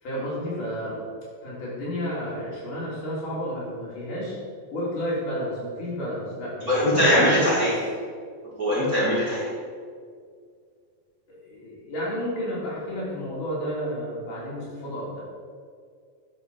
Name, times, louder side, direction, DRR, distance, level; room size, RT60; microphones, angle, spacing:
voice 1, 0.0-1.0 1.4-4.3 4.7-7.7 11.3-15.2, equal, 65° left, -7 dB, 4.6 m, -31 dB
voice 2, 6.7-7.7 8.6-9.5, equal, 30° right, -9 dB, 2.6 m, -21 dB
10.5 x 6.0 x 5.5 m, 2.1 s
omnidirectional pair, 3.9 m